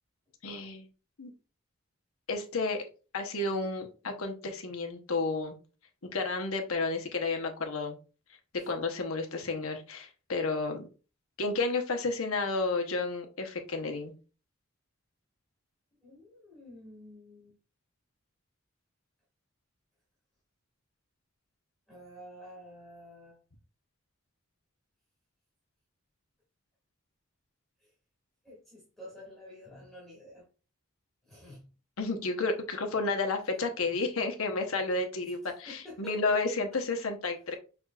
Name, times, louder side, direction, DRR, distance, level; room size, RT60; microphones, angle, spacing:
voice 1, 0.4-0.9 1.2-1.3 2.3-2.8 3.1-5.6 6.0-8.0 8.7-10.9 11.4-14.1 32.0-37.5, left 3 dB, 85° left, 4 dB, 1.0 m, -31 dB
voice 2, 15.9-17.6 21.9-23.4 27.8-27.9 28.4-30.5 31.2-31.7 35.3-36.3, left 1 dB, ahead, -7 dB, 1.9 m, -50 dB
6.3 x 3.4 x 2.4 m, 0.34 s
head